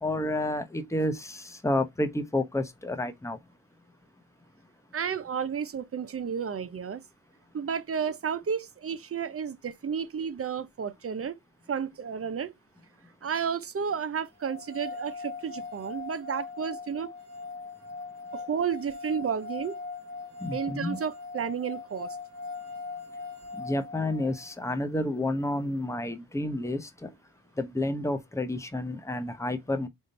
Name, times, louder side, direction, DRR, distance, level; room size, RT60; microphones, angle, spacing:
voice 1, 0.0-3.4 20.4-21.0 23.5-27.1 27.6-29.9, left 1 dB, 5° left, 0.8 m, -30 dB
voice 2, 4.9-7.0 7.5-11.4 11.7-12.5 13.2-17.1 18.3-19.8 20.5-22.2, right 7 dB, 35° right, 0.6 m, -32 dB
sound 1, 14.4-24.5, left 4 dB, 55° right, 1.2 m, -40 dB
3.7 x 2.5 x 4.1 m
cardioid pair, 55°, 39 cm